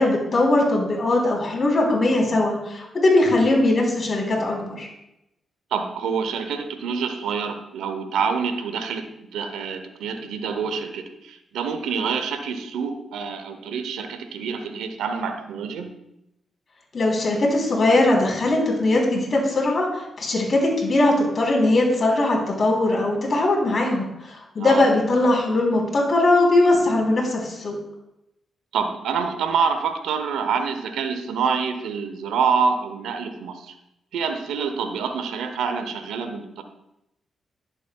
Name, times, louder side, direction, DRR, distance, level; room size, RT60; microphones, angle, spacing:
voice 1, 0.0-4.9 16.9-27.7, left 2 dB, 50° left, -1 dB, 3.3 m, -20 dB
voice 2, 5.7-15.9 24.6-24.9 28.7-33.7 34.1-36.6, right 6 dB, 85° right, 7 dB, 0.7 m, -27 dB
11.0 x 7.4 x 2.3 m, 0.85 s
supercardioid pair, 50°, 0 cm